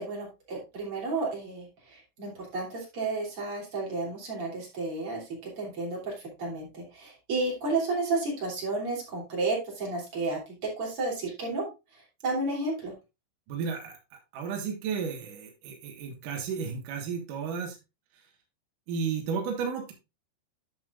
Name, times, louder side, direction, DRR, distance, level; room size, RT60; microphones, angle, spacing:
voice 1, 0.0-6.1 6.4-11.7 12.2-12.9, right 3 dB, 35° right, -3 dB, 3.4 m, -32 dB
voice 2, 13.5-17.8 18.1-18.3 18.9-19.9, right 6 dB, 60° right, 1 dB, 2.4 m, -33 dB
11.0 x 6.7 x 2.4 m, 0.25 s
omnidirectional pair, 5.3 m